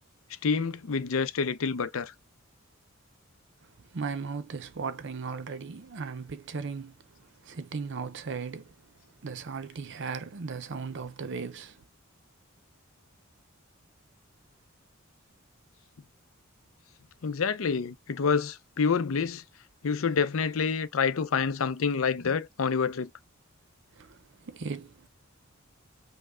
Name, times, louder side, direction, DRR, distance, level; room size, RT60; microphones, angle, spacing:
voice 1, 0.4-2.1 17.2-19.4 19.8-23.1, left 5 dB, 65° left, 0.5 m, -27 dB
voice 2, 3.9-6.9 7.4-8.7 9.2-11.8 24.0-24.2 24.5-25.1, right 5 dB, 60° right, 0.6 m, -36 dB
5.4 x 2.1 x 3.6 m
head